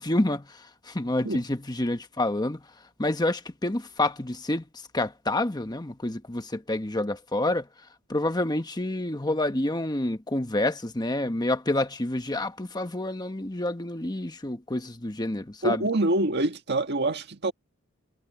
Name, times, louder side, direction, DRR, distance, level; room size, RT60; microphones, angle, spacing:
voice 1, 0.0-2.6 3.0-4.6 4.9-7.7 8.1-15.8, left 1 dB, 20° left, 1.2 m, -28 dB
voice 2, 15.6-17.5, right 2 dB, 55° right, 1.8 m, -25 dB
head